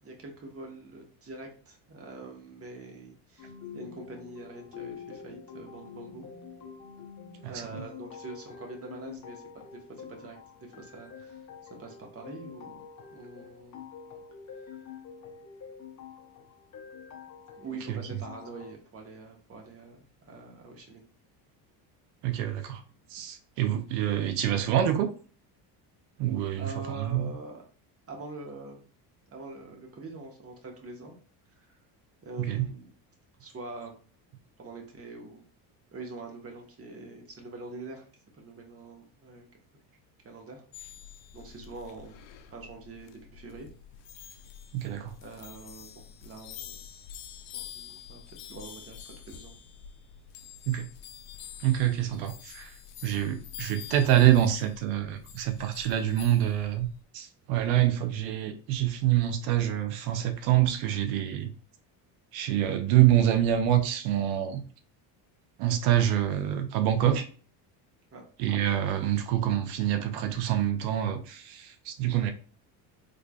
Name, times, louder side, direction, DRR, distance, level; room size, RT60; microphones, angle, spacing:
voice 1, 0.0-6.3 7.5-11.5 11.8-12.8 13.1-13.9 17.6-21.1 26.5-27.6 28.1-28.8 29.3-31.1 31.6-31.8 32.2-32.8 33.4-33.9 34.6-35.5 35.9-38.1 38.3-39.5 39.7-39.8 40.2-40.9 41.3-42.2 42.5-43.7 45.2-46.9 47.5-49.5 68.1-68.2, right 3 dB, 30° right, 1.2 m, -44 dB
sound 1, 3.4-18.7, left 7 dB, 40° left, 0.7 m, -46 dB
voice 2, 7.4-7.8 17.9-18.0 22.2-22.8 23.1-25.1 26.2-26.7 27.0-27.3 32.5-32.7 44.7-45.1 50.7-50.9 51.6-52.8 53.0-56.9 57.1-61.5 62.3-64.6 65.6-67.3 68.4-72.3, right 12 dB, 85° right, 0.6 m, -26 dB
sound 2, 40.7-57.0, left 9 dB, 80° left, 0.6 m, -47 dB
3.7 x 3.3 x 2.3 m
cardioid pair, 105°, 47 cm